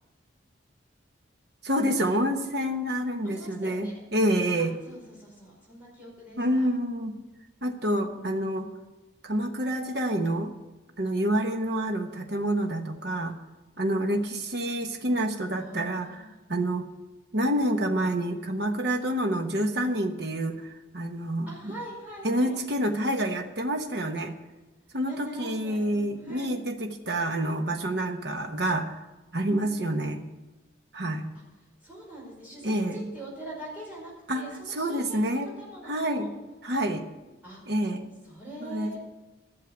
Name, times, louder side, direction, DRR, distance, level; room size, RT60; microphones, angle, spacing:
voice 1, 1.6-4.7 6.4-7.2 7.6-8.7 9.2-10.5 11.0-13.3 13.8-16.8 17.3-21.7 22.2-24.3 24.9-29.0 29.3-30.2 30.9-31.3 32.6-33.1 34.3-35.5 35.9-36.3 36.6-37.0 37.7-38.1 38.6-39.0, right 1 dB, 55° right, 5 dB, 1.1 m, -28 dB
voice 2, 3.2-4.0 4.6-6.7 15.4-16.4 21.5-22.6 25.1-26.5 31.8-36.3 37.4-37.6 38.2-39.0, right 1 dB, 10° right, -5 dB, 5.0 m, -43 dB
12.0 x 6.6 x 9.6 m, 1.1 s
head